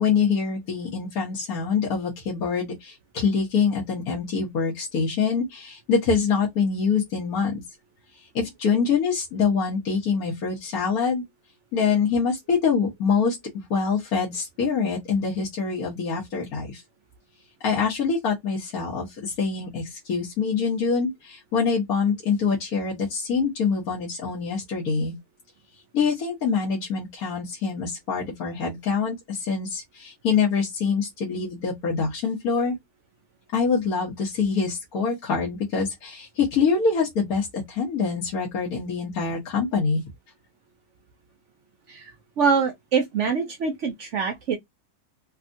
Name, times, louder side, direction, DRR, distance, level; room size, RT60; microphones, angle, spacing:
voice 1, 0.0-7.6 8.2-11.2 11.7-16.8 17.6-25.2 25.9-32.8 33.5-40.0, left 5 dB, 65° left, 1.4 m, -25 dB
voice 2, 41.9-44.6, right 5 dB, 60° right, 0.8 m, -24 dB
3.4 x 2.4 x 2.5 m
omnidirectional pair, 1.8 m